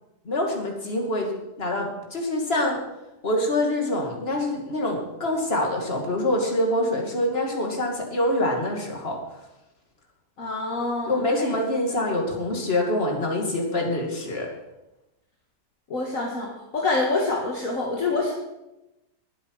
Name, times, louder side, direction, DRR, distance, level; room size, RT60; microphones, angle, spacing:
voice 1, 0.2-1.3 1.6-2.8 3.2-9.2 11.1-14.5, left 1 dB, 35° left, 1 dB, 2.6 m, -25 dB
voice 2, 10.4-11.3 11.9-12.0 15.9-18.3, left 3 dB, 50° left, -1 dB, 2.1 m, -26 dB
20.5 x 8.3 x 4.8 m, 0.96 s
omnidirectional pair, 1.8 m